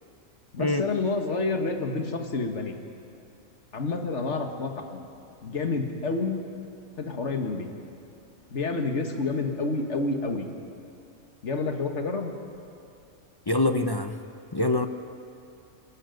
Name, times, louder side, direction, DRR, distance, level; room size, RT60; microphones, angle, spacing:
voice 1, 0.5-2.8 3.7-5.0 5.4-6.4 7.0-7.7 8.5-10.5 11.4-12.3, left 3 dB, 60° left, 4 dB, 1.9 m, -29 dB
voice 2, 13.5-14.1 14.5-14.9, left 2 dB, 25° left, 7 dB, 0.5 m, -24 dB
28.5 x 12.5 x 9.3 m, 2.6 s
omnidirectional pair, 1.4 m